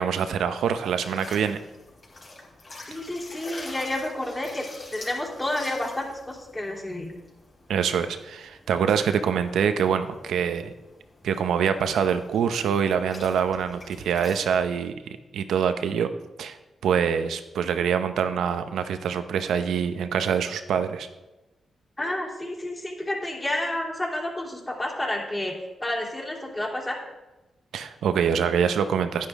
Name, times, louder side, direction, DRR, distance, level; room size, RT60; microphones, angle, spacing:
voice 1, 0.0-1.6 7.7-10.7 11.2-16.1 16.4-21.1 27.7-29.3, right 7 dB, 85° right, 10 dB, 0.7 m, -25 dB
sound 1, 0.8-14.6, left 2 dB, 50° left, 3.8 m, -46 dB
voice 2, 2.9-4.7 4.9-7.1 22.0-25.5 25.8-27.0, left 1 dB, 25° left, -3 dB, 2.9 m, -30 dB
10.0 x 9.8 x 3.6 m, 1.1 s
cardioid pair, 60°, 0 cm